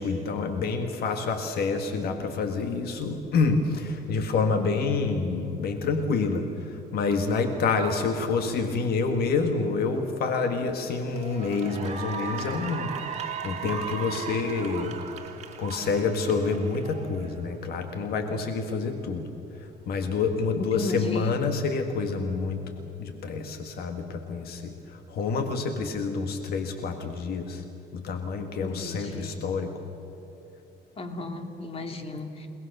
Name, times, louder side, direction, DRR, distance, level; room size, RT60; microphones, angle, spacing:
voice 1, 0.0-15.0 15.6-19.3 19.6-22.6 23.0-27.6 27.9-29.7, left 4 dB, 65° left, 6 dB, 1.9 m, -28 dB
Cheering / Applause, 10.3-10.6 11.0-17.6, right 6 dB, 40° right, 2.6 m, -37 dB
voice 2, 20.5-21.3 28.5-29.4 31.0-32.5, left 2 dB, 35° left, 5 dB, 2.7 m, -35 dB
28.5 x 19.5 x 6.8 m, 3.0 s
cardioid pair, 110°, 17 cm